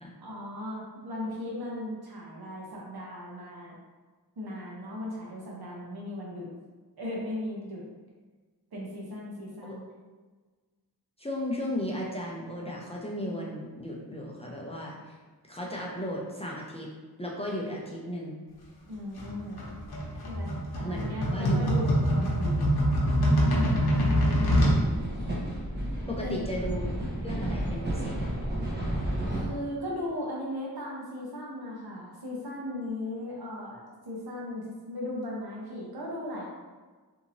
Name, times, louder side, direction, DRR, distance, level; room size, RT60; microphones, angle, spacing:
voice 1, 0.2-3.8 4.4-6.5 7.0-7.8 8.7-9.8 18.9-19.6 20.2-22.6 26.2-26.4 29.3-36.4, left 1 dB, 70° right, -4 dB, 0.9 m, -37 dB
voice 2, 11.2-14.9 15.5-16.9 17.2-18.4 20.8-21.6 25.2-25.6 26.1-26.9 27.2-28.3, left 1 dB, 15° left, -4 dB, 0.5 m, -35 dB
sound 1, 19.2-24.8, equal, 70° left, 0.8 m, -24 dB
sound 2, 24.5-29.5, right 1 dB, 25° right, 0.8 m, -32 dB
2.8 x 2.7 x 2.6 m, 1.4 s
wide cardioid pair, 80°, 39 cm